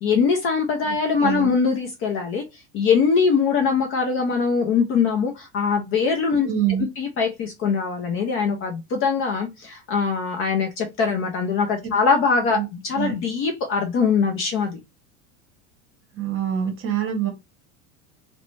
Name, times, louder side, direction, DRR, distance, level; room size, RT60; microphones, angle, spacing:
voice 1, 0.0-6.5 7.0-14.8, left 5 dB, 35° left, 0.4 m, -22 dB
voice 2, 6.4-6.9 11.8-11.9 12.5-12.7 12.9-13.1 16.1-17.3, right 10 dB, 30° right, 0.8 m, -25 dB
2.5 x 2.1 x 3.0 m
supercardioid pair, 140°, 42 cm